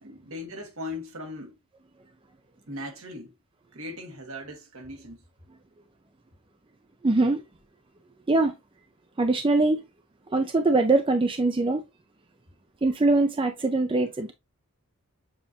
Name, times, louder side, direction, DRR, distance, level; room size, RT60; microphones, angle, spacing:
voice 1, 0.0-1.5 2.7-3.3 3.7-5.2, left 1 dB, 75° right, 1.5 m, -38 dB
voice 2, 7.0-7.4 8.3-8.5 9.2-9.8 10.3-11.8 12.8-14.3, right 2 dB, 25° right, 0.4 m, -22 dB
7.1 x 2.5 x 2.7 m
head